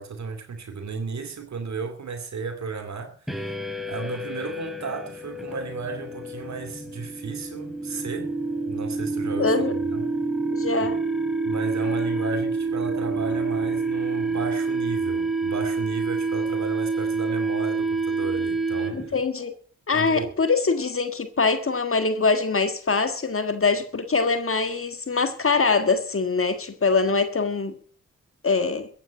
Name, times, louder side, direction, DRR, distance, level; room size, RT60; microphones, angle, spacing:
voice 1, 0.0-3.3 3.9-8.3 8.7-9.5 9.9-10.1 10.8-10.9 11.4-19.1 19.9-20.4, right 4 dB, 70° right, 2.4 m, -34 dB
sound 1, 3.3-19.2, right 3 dB, ahead, 2.8 m, -28 dB
voice 2, 9.4-9.8 10.5-11.0 18.9-19.5 19.9-27.8 28.4-28.9, left 4 dB, 45° left, 1.7 m, -23 dB
14.5 x 8.6 x 7.4 m
supercardioid pair, 40°, 29 cm